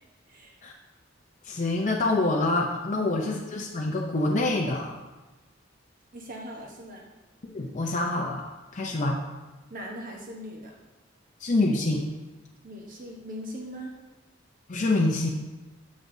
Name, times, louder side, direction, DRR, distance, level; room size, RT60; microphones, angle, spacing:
voice 1, 0.3-0.6 2.9-3.3 6.1-7.1 9.7-10.7 12.6-13.9, equal, 45° right, 0 dB, 1.0 m, -40 dB
voice 2, 1.4-4.9 7.4-8.4 8.7-9.2 11.4-12.1 14.7-15.3, left 2 dB, 40° left, -1 dB, 0.6 m, -26 dB
8.3 x 6.0 x 2.7 m, 1.2 s
head